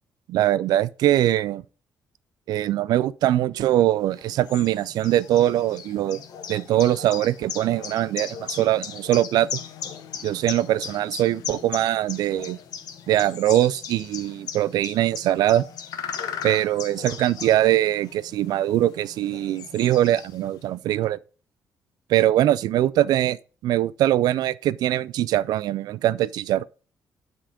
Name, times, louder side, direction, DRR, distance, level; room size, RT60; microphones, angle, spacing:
voice 1, 0.3-1.6 2.5-6.2 6.5-9.5 10.2-12.6 13.1-15.6 16.4-21.2 22.1-23.4 23.6-26.6, right 13 dB, 80° right, 0.4 m, -22 dB
sound 1, 4.1-20.6, left 8 dB, 75° left, 1.1 m, -37 dB
10.0 x 3.7 x 5.0 m
cardioid pair, 120°, 7 cm